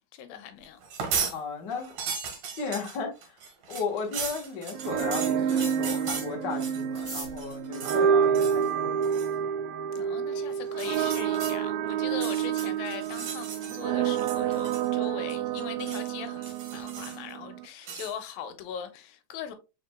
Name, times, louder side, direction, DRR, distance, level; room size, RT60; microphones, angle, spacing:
voice 1, 0.1-0.8 10.0-19.5, left 8 dB, 85° left, 2.5 m, -40 dB
sound 1, 0.8-1.4 1.7-7.1 7.4-8.0 8.3-8.7 9.0-9.3 10.7-11.6 12.1-13.8 14.1-15.0 15.3-16.1 16.4-17.3 17.8-18.2, right 6 dB, 60° right, 2.3 m, -36 dB
voice 2, 1.3-1.9 2.5-3.4 3.7-9.0, left 5 dB, 60° left, 1.1 m, -35 dB
sound 2, 4.7-17.7, right 8 dB, 90° right, 2.4 m, -28 dB
sound 3, 6.9-9.1 9.9-10.0 10.2-10.3 10.6-11.1 11.4-11.5 11.7-12.1 12.4-12.6 13.0-13.3, right 2 dB, 25° right, 3.0 m, -44 dB
5.1 x 4.2 x 2.2 m
omnidirectional pair, 4.0 m